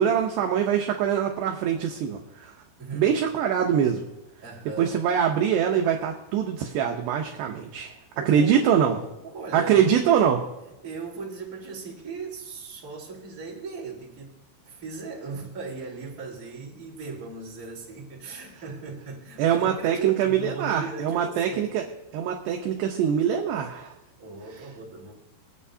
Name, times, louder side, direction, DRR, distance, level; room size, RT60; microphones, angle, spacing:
voice 1, 0.0-2.5 2.9-4.0 4.8-7.9 8.3-9.0 9.5-10.4 19.4-21.8 22.1-23.9, right 8 dB, 75° right, 2 dB, 2.6 m, -23 dB
voice 2, 2.8-3.2 4.4-5.0 8.1-8.7 9.2-9.9 10.8-14.4 14.6-21.6 24.2-25.1, right 4 dB, 20° right, -6 dB, 3.1 m, -37 dB
27.0 x 9.2 x 2.8 m, 0.96 s
omnidirectional pair, 5.7 m